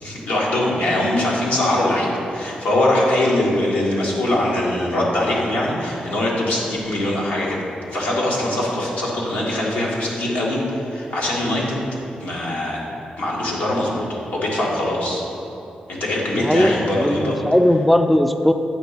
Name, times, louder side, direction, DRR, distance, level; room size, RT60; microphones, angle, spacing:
voice 1, 0.0-7.6 7.9-11.8 12.2-12.8 13.2-14.0 14.3-15.2 15.9-17.4, left 1 dB, 90° left, -4 dB, 1.5 m, -22 dB
voice 2, 16.4-18.5, left 1 dB, ahead, 7 dB, 0.3 m, -18 dB
8.8 x 3.0 x 6.4 m, 2.9 s
cardioid pair, 90°, 3 cm